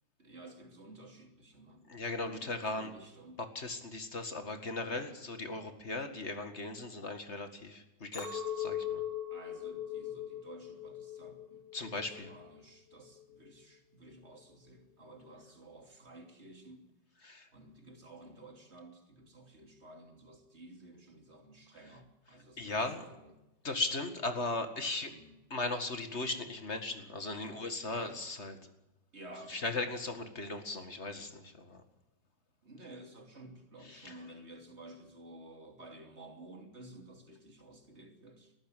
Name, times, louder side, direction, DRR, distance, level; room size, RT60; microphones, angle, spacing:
voice 1, 0.2-1.8 2.2-3.4 4.9-5.1 9.3-16.9 17.5-23.4 25.0-25.4 27.4-28.2 29.1-29.9 32.6-38.5, right 1 dB, 35° right, 4 dB, 3.3 m, -53 dB
voice 2, 1.9-2.9 3.6-9.0 11.7-12.3 17.2-17.5 22.6-23.0 23.6-25.1 25.5-28.6 29.5-31.8 33.9-34.1, left 2 dB, 40° left, 8 dB, 2.2 m, -37 dB
Chink clink, 8.1-12.5 12.9-13.4, left 9 dB, 70° left, 4.1 m, -40 dB
21.0 x 14.5 x 9.2 m, 0.96 s
omnidirectional pair, 1.9 m